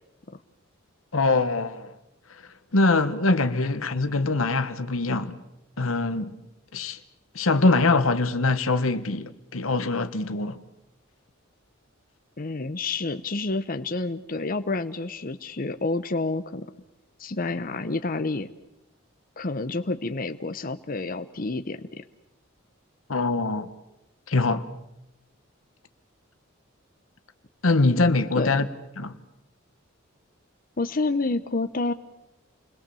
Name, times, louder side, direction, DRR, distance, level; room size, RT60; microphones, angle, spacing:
voice 1, 1.1-1.9 2.7-5.4 5.8-6.3 6.7-7.0 7.3-10.6 23.1-23.7 24.3-24.6 27.6-28.7 29.0-29.2, left 3 dB, 90° left, 1.3 m, -23 dB
voice 2, 12.4-16.7 17.2-18.5 19.4-22.0 28.3-28.7 30.8-31.9, left 3 dB, 45° left, 0.9 m, -29 dB
29.0 x 21.0 x 7.0 m
head